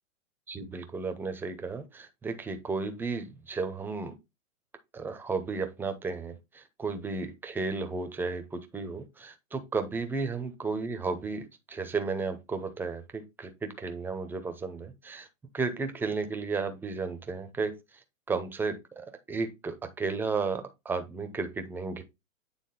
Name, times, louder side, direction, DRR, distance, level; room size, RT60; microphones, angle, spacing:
voice 1, 0.5-4.1 4.9-15.3 15.5-17.7 18.3-22.0, right 4 dB, 5° right, 0.6 m, -33 dB
8.7 x 3.7 x 3.8 m
hypercardioid pair, 120°, 40 cm